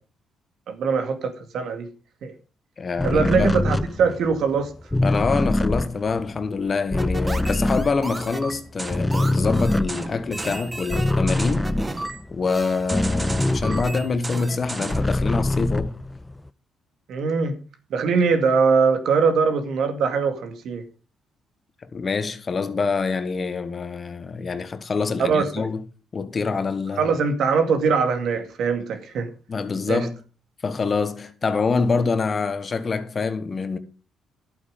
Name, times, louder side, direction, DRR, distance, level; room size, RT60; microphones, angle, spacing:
voice 1, 0.7-1.9 2.2-2.3 3.0-4.7 17.1-17.6 17.9-20.8 25.2-25.7 27.0-29.3 29.9-30.0, right 5 dB, 70° right, 2.2 m, -22 dB
voice 2, 2.8-3.5 5.0-11.7 12.3-16.0 21.8-25.8 26.1-27.1 29.5-30.2 30.6-33.8, left 4 dB, 40° left, 1.5 m, -25 dB
sound 1, 3.0-8.6 8.8-14.3 14.6-16.5, left 1 dB, 10° left, 0.6 m, -24 dB
sound 2, 7.0-15.1, right 2 dB, 20° right, 1.5 m, -33 dB
11.5 x 8.6 x 5.3 m
cardioid pair, 90°, 0 cm